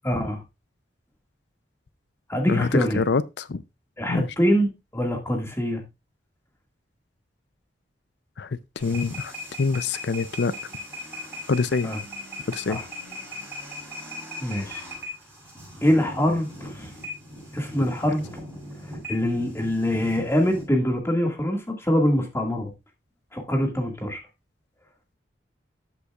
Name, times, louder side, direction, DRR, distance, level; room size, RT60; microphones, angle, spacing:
voice 1, 0.0-0.4 2.3-3.0 4.0-5.8 11.8-12.0 12.7-12.8 14.4-14.8 15.8-16.9 17.5-18.2 19.1-22.7 23.3-24.2, equal, 15° left, 1.9 m, -24 dB
voice 2, 2.5-3.6 4.1-4.3 8.4-10.5 11.5-11.9 12.5-12.8, left 4 dB, 65° left, 0.5 m, -26 dB
sound 1, 8.8-20.7, left 1 dB, 10° right, 7.0 m, -39 dB
13.0 x 8.3 x 2.4 m
head